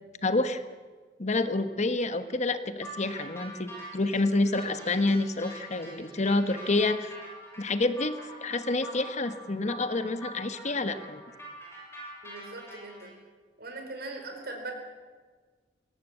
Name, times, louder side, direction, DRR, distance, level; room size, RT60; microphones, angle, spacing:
voice 1, 0.2-0.6 1.2-7.1 7.6-11.2, left 2 dB, 40° left, 11 dB, 1.1 m, -28 dB
sound 1, 2.8-13.1, right 1 dB, 15° left, 7.6 m, -45 dB
voice 2, 12.2-13.1 13.6-14.7, right 2 dB, 60° right, 3 dB, 4.8 m, -40 dB
21.5 x 17.5 x 8.1 m, 1.5 s
head